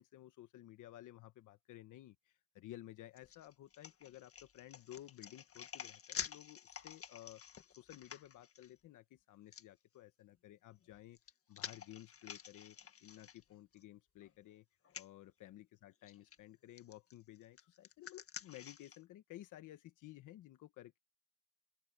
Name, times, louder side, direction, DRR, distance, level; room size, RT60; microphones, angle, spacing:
voice 1, 0.0-7.4 7.7-11.2 11.5-14.7 14.9-21.0, left 14 dB, 85° left, 1.4 m, -55 dB
sound 1, 3.2-8.7 9.5-9.6 10.8-13.8 14.2-14.3 14.8-15.1 16.0-16.4 16.8-19.0, left 8 dB, 50° left, 1.8 m, -50 dB
open air
cardioid pair, 90°, 30 cm